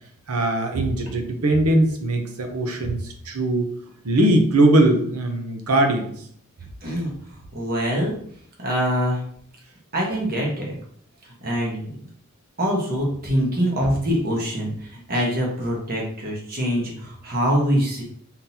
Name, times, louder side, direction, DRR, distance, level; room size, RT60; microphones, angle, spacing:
voice 1, 0.3-6.3, right 1 dB, 80° right, 4 dB, 0.8 m, -21 dB
voice 2, 6.8-7.1 7.5-8.1 8.6-9.2 9.9-10.7 11.4-11.9 12.6-18.0, equal, 45° right, -2 dB, 1.3 m, -24 dB
4.0 x 3.9 x 2.8 m, 0.62 s
head